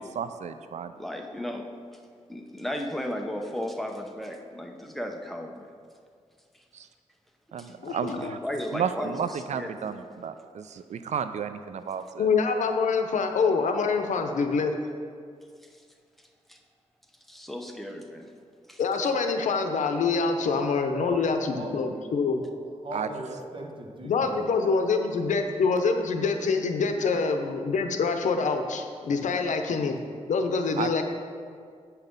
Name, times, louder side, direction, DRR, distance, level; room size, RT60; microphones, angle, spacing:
voice 1, 0.0-0.9 6.7-6.9 7.5-8.4 8.7-12.3 22.9-23.1 29.7-29.8 30.8-31.0, right 7 dB, 70° right, 10 dB, 0.4 m, -33 dB
voice 2, 0.9-2.0 2.3-5.7 6.5-6.6 7.6-7.7 8.2-10.0 15.6-15.8 16.2-16.6 17.3-18.3 18.7-18.8, left 1 dB, ahead, 2 dB, 0.8 m, -35 dB
voice 3, 7.8-8.3 12.2-14.7 18.8-22.4 24.0-30.0 30.3-31.0, left 4 dB, 80° left, 6 dB, 0.7 m, -25 dB
voice 4, 22.3-24.7, right 2 dB, 40° right, 1 dB, 1.2 m, -40 dB
8.3 x 5.8 x 5.3 m, 2.2 s
wide cardioid pair, 100°, 12 cm